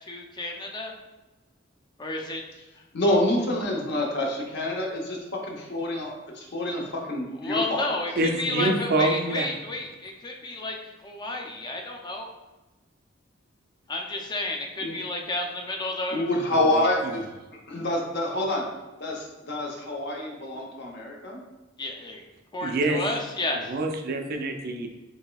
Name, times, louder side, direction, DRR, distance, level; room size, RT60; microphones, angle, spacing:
voice 1, 0.1-0.9 2.0-2.4 7.4-10.8 11.0-12.3 13.9-16.3 21.8-22.2 22.5-23.7, left 2 dB, 20° left, 1 dB, 0.4 m, -31 dB
voice 2, 2.9-7.9 14.8-15.0 16.1-17.2 17.7-18.6 19.0-21.4, left 1 dB, 60° left, -1 dB, 0.7 m, -27 dB
voice 3, 8.2-9.5 16.5-16.9 22.6-23.0 23.7-24.9, right 2 dB, 50° right, 4 dB, 0.4 m, -26 dB
4.1 x 3.2 x 2.3 m, 1.1 s
head